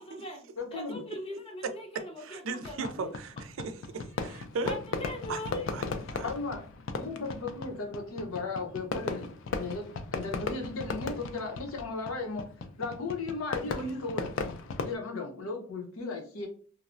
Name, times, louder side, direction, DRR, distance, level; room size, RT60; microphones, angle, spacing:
voice 1, 0.0-3.1 4.6-5.7 6.2-6.3, left 1 dB, 25° left, 0.6 m, -41 dB
voice 2, 0.6-1.0 6.2-6.6 7.0-12.4 12.8-14.3 14.8-16.5, left 3 dB, 85° left, 0.8 m, -36 dB
voice 3, 2.2-4.8 5.3-5.4 5.7-5.8 6.1-6.3, right 4 dB, 65° right, 0.4 m, -37 dB
Fireworks, 2.6-14.9, left 4 dB, 65° left, 0.4 m, -37 dB
3.1 x 2.0 x 2.5 m
head